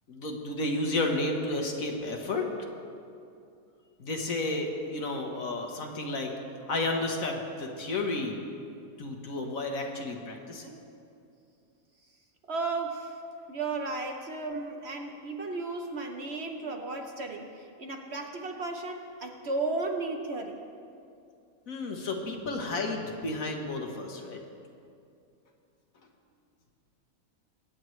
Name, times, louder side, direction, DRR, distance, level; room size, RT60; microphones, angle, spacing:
voice 1, 0.1-2.5 4.0-6.3 6.7-8.4 9.0-10.8 21.7-24.4, left 2 dB, 65° left, 2 dB, 1.6 m, -32 dB
voice 2, 12.4-13.2 13.5-20.6, right 3 dB, 50° right, 3 dB, 1.0 m, -34 dB
22.5 x 9.2 x 3.2 m, 2.5 s
omnidirectional pair, 1.5 m